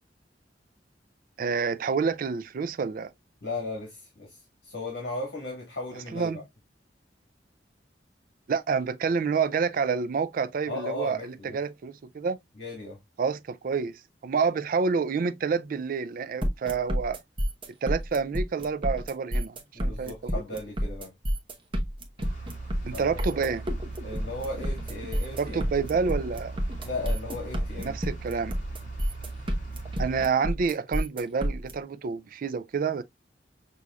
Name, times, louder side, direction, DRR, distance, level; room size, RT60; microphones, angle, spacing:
voice 1, 1.4-3.1 6.1-6.4 8.5-12.4 13.2-17.2 17.8-19.6 19.8-20.4 22.8-23.7 25.4-26.6 27.8-28.5 30.0-33.0, right 5 dB, 50° right, 0.4 m, -28 dB
voice 2, 3.4-6.4 10.7-11.6 12.6-13.0 19.7-21.1 22.9-23.2 24.0-25.7 26.8-28.0, left 2 dB, 75° left, 1.5 m, -36 dB
sound 1, 16.4-31.7, equal, 30° right, 0.9 m, -29 dB
sound 2, 22.2-30.3, right 2 dB, 45° left, 2.0 m, -39 dB
6.1 x 2.7 x 2.2 m
head